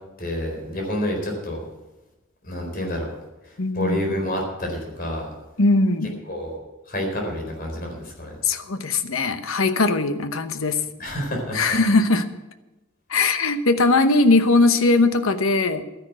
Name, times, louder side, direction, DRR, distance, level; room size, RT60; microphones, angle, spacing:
voice 1, 0.2-1.6 2.4-3.1 3.4-5.3 6.3-6.6 6.9-8.3 11.0-11.8, left 1 dB, 45° left, 1 dB, 4.2 m, -28 dB
voice 2, 3.6-4.1 5.6-6.2 8.4-10.8 11.5-12.3 13.1-15.8, left 3 dB, 70° left, 9 dB, 1.0 m, -20 dB
12.5 x 10.5 x 6.2 m, 1.0 s
head